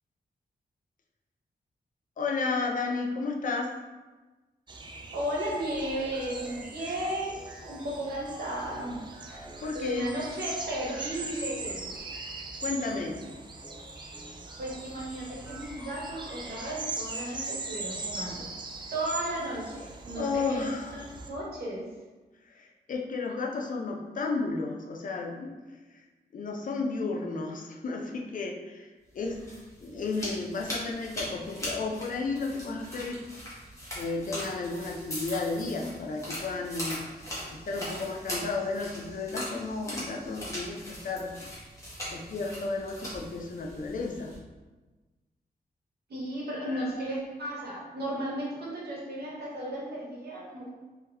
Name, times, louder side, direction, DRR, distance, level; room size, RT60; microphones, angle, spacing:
voice 1, 2.2-3.7 9.3-10.1 12.6-13.2 20.1-21.0 22.6-25.5 26.3-28.9 29.1-29.4 29.8-33.2 34.0-37.0 37.5-41.4 42.1-44.3 46.7-46.9, left 3 dB, 55° left, 0 dB, 0.5 m, -33 dB
sound 1, 4.7-21.3, right 3 dB, 30° right, 0.3 m, -41 dB
voice 2, 5.1-7.4 7.6-9.0 9.7-11.9 14.6-18.5 18.9-21.9 46.1-50.7, right 1 dB, 75° right, -4 dB, 1.2 m, -34 dB
sound 2, 5.7-16.8, right 1 dB, 10° right, 1.0 m, -49 dB
sound 3, 29.2-44.4, equal, 20° left, 1.2 m, -40 dB
3.6 x 2.9 x 3.4 m, 1.2 s
wide cardioid pair, 175°, 17 cm